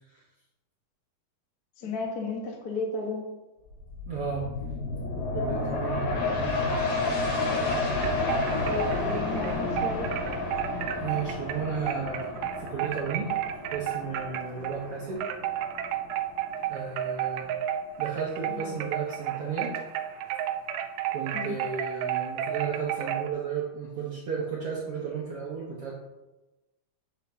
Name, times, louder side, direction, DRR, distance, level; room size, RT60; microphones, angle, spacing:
voice 1, 1.8-3.2 8.7-10.1 18.5-18.7 21.3-21.5, left 3 dB, 90° left, 0 dB, 0.8 m, -33 dB
sound 1, 3.7-16.9 17.4-17.5, left 3 dB, 70° left, 2.9 m, -31 dB
voice 2, 4.1-4.4 5.3-6.7 11.0-12.3 12.6-13.3 13.7-15.2 16.7-17.5 18.0-19.7 21.1-25.9, right 6 dB, 65° right, -5 dB, 1.5 m, -33 dB
sound 2, 7.7-14.9 15.2-23.3, right 10 dB, 85° right, 2.4 m, -32 dB
8.4 x 8.1 x 2.9 m, 1.1 s
omnidirectional pair, 4.2 m